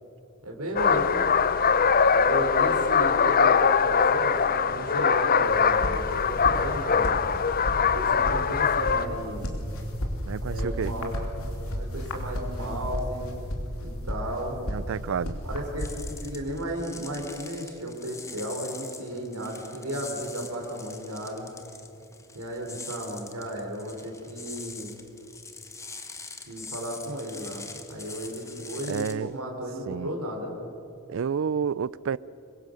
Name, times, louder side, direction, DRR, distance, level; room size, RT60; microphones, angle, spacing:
voice 1, 0.4-1.2 2.1-7.2 7.7-9.5 10.5-11.3 11.7-13.3 13.8-14.6 15.4-21.5 22.3-24.9 26.5-30.6, right 1 dB, 90° right, 3.5 m, -34 dB
sound 1, 0.8-9.1, left 6 dB, 40° left, 0.6 m, -22 dB
sound 2, 5.4-16.3, equal, 65° left, 3.0 m, -34 dB
voice 2, 10.3-10.9 14.7-15.4 28.9-29.3 29.9-30.1 31.1-32.2, right 6 dB, 60° right, 0.4 m, -30 dB
sound 3, 15.8-29.1, left 4 dB, 15° left, 1.2 m, -43 dB
24.5 x 21.5 x 6.4 m
head